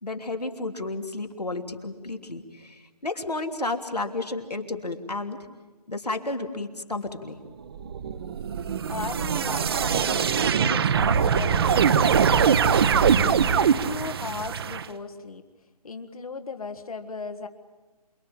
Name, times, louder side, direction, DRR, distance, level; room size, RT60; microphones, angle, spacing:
voice 1, 0.0-5.4 5.9-7.4, left 2 dB, 85° left, 4 dB, 3.1 m, -32 dB
sound 1, 7.7-14.8, right 7 dB, 40° right, 1.0 m, -22 dB
voice 2, 8.8-15.4 15.8-17.5, left 4 dB, 65° left, 6 dB, 1.7 m, -37 dB
27.5 x 22.0 x 8.7 m, 1.3 s
figure-of-eight pair, 145°, 20 cm